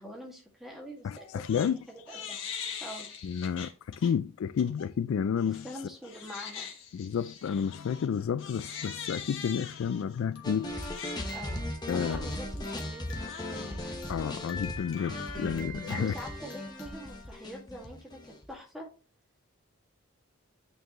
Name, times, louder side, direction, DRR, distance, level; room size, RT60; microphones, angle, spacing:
voice 1, 0.0-2.4 2.8-3.1 5.5-6.7 11.3-11.6 11.9-13.9 15.9-18.9, equal, ahead, 1.9 m, -45 dB
voice 2, 1.0-1.8 3.2-5.7 6.9-10.8 11.9-12.3 14.1-16.1, left 7 dB, 80° left, 0.3 m, -31 dB
Crying sobbing, 1.1-1.7 2.1-4.1 4.6-4.9 5.4-17.3, left 5 dB, 65° left, 1.4 m, -43 dB
sound 1, 10.4-18.5, left 1 dB, 20° left, 1.0 m, -38 dB
8.8 x 4.6 x 3.0 m
head